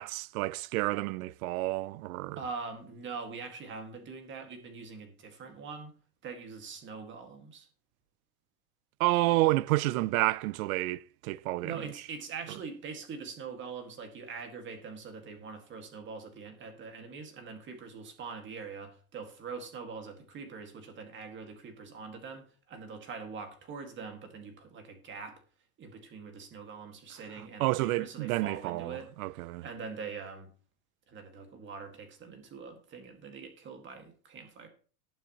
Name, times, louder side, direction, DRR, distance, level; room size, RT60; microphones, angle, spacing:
voice 1, 0.0-2.4 9.0-11.8 27.6-29.6, right 18 dB, 65° right, 0.6 m, -29 dB
voice 2, 2.4-5.9 6.2-7.7 9.5-9.6 11.6-25.4 25.8-29.1 29.6-30.5 31.1-34.7, right 5 dB, 25° right, 2.0 m, -43 dB
18.5 x 7.4 x 3.0 m
supercardioid pair, 160°, 47 cm